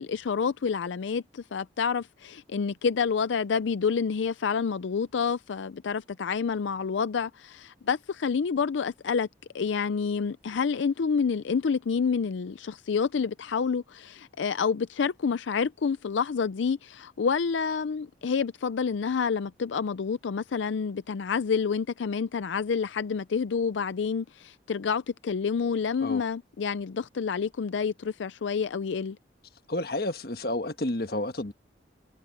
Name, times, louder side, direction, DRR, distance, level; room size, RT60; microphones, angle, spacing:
voice 1, 0.0-9.3 9.5-29.2, left 5 dB, 90° left, 0.5 m, -28 dB
voice 2, 29.7-31.5, left 1 dB, 55° left, 1.4 m, -30 dB
head